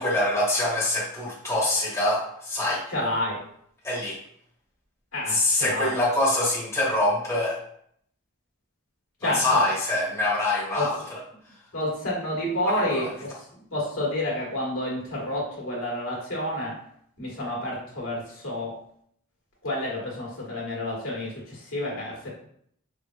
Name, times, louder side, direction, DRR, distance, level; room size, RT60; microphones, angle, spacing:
voice 1, 0.0-2.8 3.8-4.2 5.3-7.6 9.2-10.9 12.6-13.1, left 1 dB, 15° left, -6 dB, 1.2 m, -24 dB
voice 2, 2.9-3.4 5.1-5.9 9.2-9.6 10.7-10.9 11.7-13.3 13.7-16.8 17.2-18.8 19.6-22.3, left 1 dB, 70° left, -4 dB, 1.5 m, -29 dB
5.0 x 3.2 x 2.3 m, 0.67 s
head